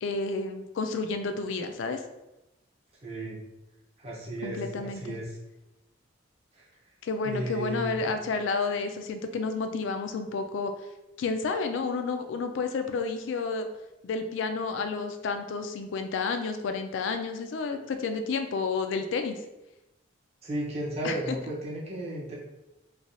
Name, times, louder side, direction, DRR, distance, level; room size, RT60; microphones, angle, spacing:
voice 1, 0.0-2.0 4.4-5.2 7.0-10.7 11.2-13.7 14.0-19.4 21.0-21.4, left 4 dB, 70° left, 7 dB, 0.3 m, -30 dB
voice 2, 3.0-3.4 4.0-5.4 6.5-6.6 7.2-8.1 20.4-22.4, right 1 dB, 35° right, -5 dB, 0.7 m, -34 dB
3.3 x 2.3 x 2.5 m, 0.96 s
head